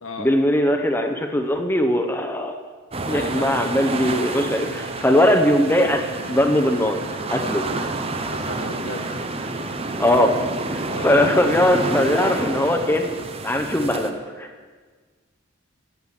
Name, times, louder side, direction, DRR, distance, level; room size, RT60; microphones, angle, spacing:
voice 1, 0.2-2.6 3.1-7.0 7.3-7.7 10.0-10.3 10.7-13.1 13.4-14.5, left 1 dB, 10° left, 5 dB, 0.7 m, -20 dB
sound 1, 2.9-14.1, right 2 dB, 30° right, 0.6 m, -29 dB
voice 2, 3.0-3.6 8.3-9.1 10.9-11.2, left 2 dB, 75° left, 3 dB, 1.4 m, -34 dB
Wind instrument woodwind instrument, 3.8-8.0, right 2 dB, 80° right, 1.8 m, -41 dB
10.5 x 8.0 x 7.2 m, 1.5 s
head